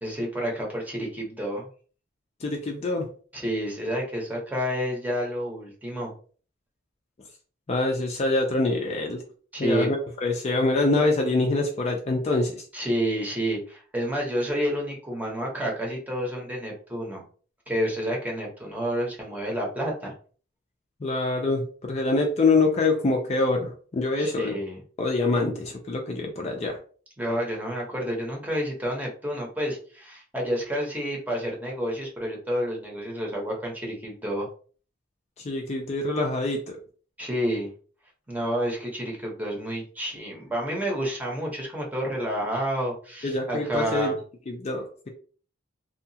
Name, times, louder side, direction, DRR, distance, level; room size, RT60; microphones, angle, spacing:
voice 1, 0.0-1.7 3.3-6.1 9.5-9.9 12.7-17.2 17.7-20.1 24.2-24.8 27.2-34.5 37.2-37.7 38.3-44.2, equal, 10° right, -2 dB, 0.8 m, -29 dB
voice 2, 2.4-3.1 7.7-9.2 9.6-12.6 21.0-24.6 25.0-26.8 35.4-36.8 43.2-44.1 44.5-45.1, left 2 dB, 35° left, 2 dB, 0.4 m, -25 dB
2.7 x 2.3 x 2.7 m, 0.42 s
head